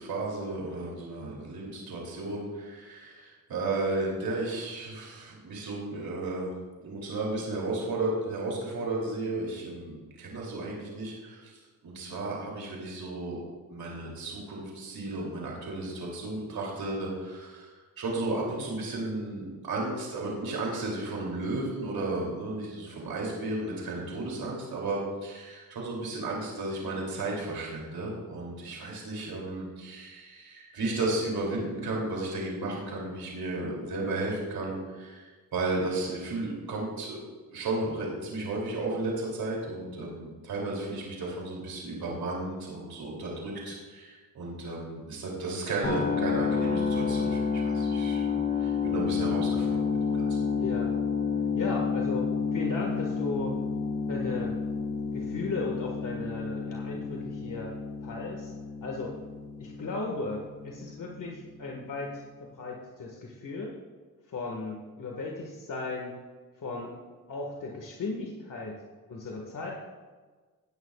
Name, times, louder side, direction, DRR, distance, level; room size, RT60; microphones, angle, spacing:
voice 1, 0.0-6.5 6.8-11.5 11.8-13.4 13.7-17.7 18.0-37.2 37.5-49.8 50.1-50.4, right 2 dB, 80° right, -2 dB, 3.1 m, -34 dB
sound 1, 45.8-61.8, left 5 dB, 25° left, 2.3 m, -30 dB
voice 2, 50.6-50.9 51.5-53.6 54.1-54.6 55.1-58.5 58.8-59.2 59.6-62.2 62.6-63.7 64.3-66.1 66.6-66.9 67.3-68.8 69.1-69.7, left 3 dB, 60° left, 0 dB, 1.8 m, -36 dB
18.5 x 9.6 x 2.4 m, 1.4 s
cardioid pair, 65°, 36 cm